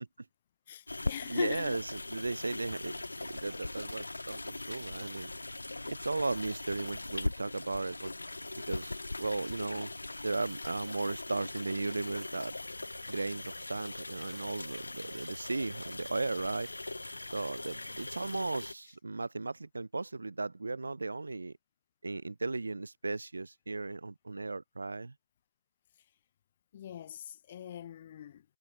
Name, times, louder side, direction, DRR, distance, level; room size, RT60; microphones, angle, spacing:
voice 1, 0.7-1.8 26.7-28.4, left 10 dB, 15° left, 0.4 m, -41 dB
sound 1, 0.9-18.7, left 2 dB, 65° left, 1.0 m, -41 dB
voice 2, 1.3-5.3 5.9-8.1 8.7-9.9 10.2-12.5 13.1-16.7 17.3-21.5 22.0-25.1, right 3 dB, 45° right, 0.9 m, -36 dB
figure-of-eight pair, 175°, 0 cm